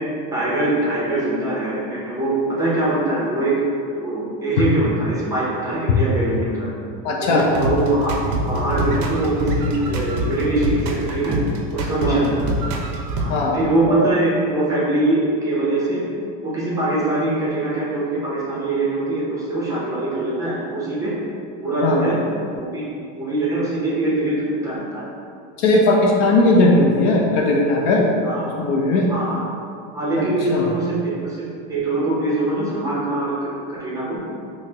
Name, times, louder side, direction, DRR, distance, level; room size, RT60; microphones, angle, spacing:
voice 1, 0.3-6.7 7.2-8.2 8.5-11.4 11.7-12.5 13.2-16.0 16.4-21.1 21.6-22.2 22.6-22.8 23.1-25.1 28.2-28.5 29.1-29.4 29.9-31.4 31.7-34.2, right 2 dB, 10° right, -8 dB, 0.6 m, -22 dB
voice 2, 7.0-7.4 12.0-12.2 13.3-13.6 21.8-22.0 25.6-28.0 28.6-29.1 30.1-30.6, left 2 dB, 55° left, -1 dB, 0.5 m, -18 dB
sound 1, 7.4-13.3, right 1 dB, 55° right, 0.5 m, -25 dB
sound 2, 13.9-16.8, right 2 dB, 30° left, 1.4 m, -31 dB
5.4 x 2.1 x 2.8 m, 2.4 s
supercardioid pair, 165°, 29 cm